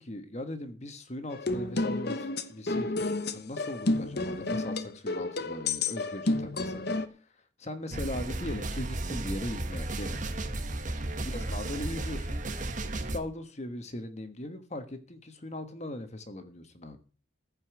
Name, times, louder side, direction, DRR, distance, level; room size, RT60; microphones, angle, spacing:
voice 1, 0.0-6.8 7.6-10.3 11.2-12.4 13.1-17.0, left 1 dB, 35° left, 9 dB, 1.4 m, -39 dB
sound 1, 1.3-7.1, left 2 dB, 55° left, 1.0 m, -31 dB
sound 2, 7.9-13.2, right 2 dB, 40° right, 1.2 m, -34 dB
14.5 x 5.5 x 8.0 m, 0.39 s
head